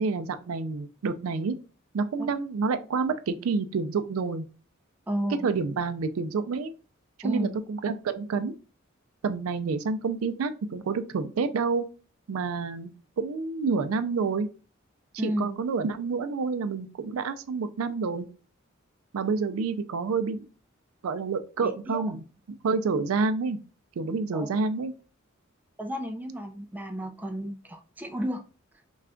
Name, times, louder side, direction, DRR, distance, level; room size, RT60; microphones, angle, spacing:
voice 1, 0.0-1.5 1.9-4.5 5.4-6.7 7.2-8.5 9.2-11.9 12.3-12.9 13.2-14.5 15.2-18.3 19.1-20.5 21.0-22.2 22.6-23.6 24.0-24.9, right 4 dB, 85° right, 0.4 m, -28 dB
voice 2, 5.1-5.5 7.2-7.5 15.2-15.5 21.6-22.0 24.3-24.6 25.8-28.4, equal, 10° right, 0.3 m, -32 dB
3.3 x 2.3 x 3.6 m
head